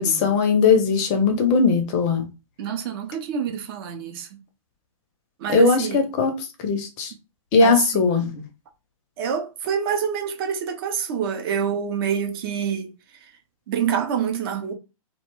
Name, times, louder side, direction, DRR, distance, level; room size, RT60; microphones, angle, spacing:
voice 1, 0.0-2.2 5.5-6.3 6.6-7.1 7.5-8.3, left 4 dB, 30° left, 0.5 m, -19 dB
voice 2, 2.6-4.3 5.4-6.0 7.6-8.0 9.2-12.9 13.7-14.7, right 7 dB, 40° right, 0.6 m, -26 dB
2.4 x 2.2 x 2.9 m
hypercardioid pair, 125°, 18 cm